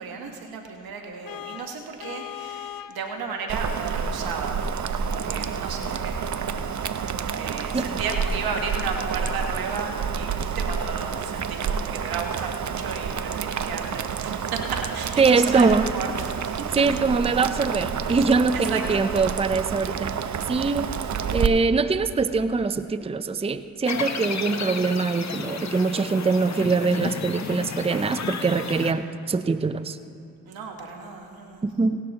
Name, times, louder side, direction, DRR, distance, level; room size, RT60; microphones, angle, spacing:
voice 1, 0.0-4.6 4.9-6.2 7.3-16.9 18.5-19.0 30.4-31.6, right 5 dB, 85° right, 3 dB, 1.3 m, -34 dB
Vehicle horn car horn honking, 1.3-3.0, left 12 dB, 75° left, 0.5 m, -38 dB
Boiling, 3.5-21.5, right 6 dB, 55° right, 0.7 m, -29 dB
voice 2, 15.2-15.9 16.8-20.1 20.5-20.9 21.3-30.0 31.6-32.0, right 4 dB, 15° right, 12 dB, 0.5 m, -23 dB
sound 1, 23.8-28.9, left 5 dB, 50° left, 1.0 m, -32 dB
18.0 x 11.5 x 2.9 m, 2.7 s
supercardioid pair, 40°, 35 cm